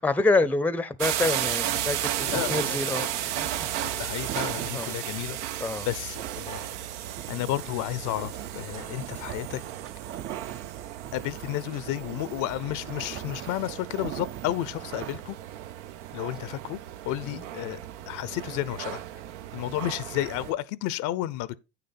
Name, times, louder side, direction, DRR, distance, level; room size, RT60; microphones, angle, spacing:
voice 1, 0.0-3.1 3.4-3.7 4.7-4.9 5.6-5.9 8.8-8.9 17.2-17.4, left 3 dB, 5° left, 0.6 m, -27 dB
sound 1, 1.0-20.5, right 12 dB, 80° right, 0.7 m, -34 dB
sound 2, 1.5-15.2, right 11 dB, 35° right, 0.5 m, -42 dB
voice 2, 2.3-3.1 3.8-5.4 5.8-6.7 7.3-9.6 11.1-15.4 16.1-16.8 17.0-19.0 19.5-21.6, left 15 dB, 60° left, 0.6 m, -32 dB
8.8 x 6.8 x 4.1 m
supercardioid pair, 90°, 35 cm